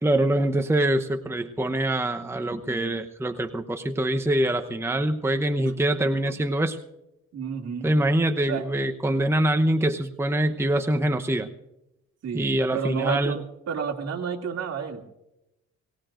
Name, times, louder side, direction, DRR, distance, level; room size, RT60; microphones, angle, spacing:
voice 1, 0.0-6.8 7.8-11.5 12.3-13.3, right 1 dB, 10° right, 6 dB, 0.9 m, -24 dB
voice 2, 7.3-7.9 8.5-8.7 12.2-15.0, right 6 dB, 60° right, 2 dB, 2.5 m, -31 dB
23.0 x 17.5 x 2.6 m, 0.89 s
cardioid pair, 90°, 30 cm